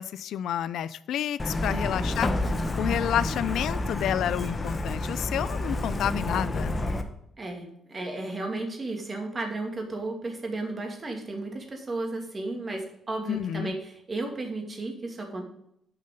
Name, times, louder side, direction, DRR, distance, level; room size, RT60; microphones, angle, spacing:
voice 1, 0.0-2.3 2.8-6.7 13.3-13.7, left 10 dB, 75° left, 0.4 m, -29 dB
Truck, 1.4-7.0, left 2 dB, 25° left, 1.1 m, -29 dB
voice 2, 7.4-15.4, right 2 dB, 30° right, 2.4 m, -34 dB
9.1 x 5.7 x 5.2 m
cardioid pair, 90°, 0 cm